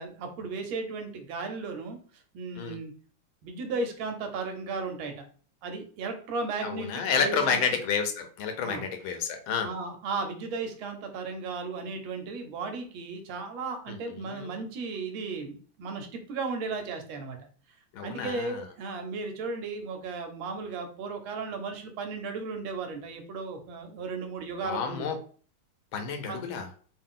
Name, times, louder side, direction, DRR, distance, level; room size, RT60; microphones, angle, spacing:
voice 1, 0.0-2.0 2.3-2.9 3.4-5.2 5.6-7.6 8.6-8.8 9.6-17.4 18.0-25.1 26.3-26.5, right 4 dB, 75° right, 6 dB, 1.4 m, -35 dB
voice 2, 6.6-9.7 13.9-14.6 17.9-18.6 24.6-25.2 25.9-26.7, left 6 dB, 75° left, 6 dB, 1.4 m, -30 dB
3.6 x 2.4 x 3.6 m, 0.42 s
omnidirectional pair, 2.3 m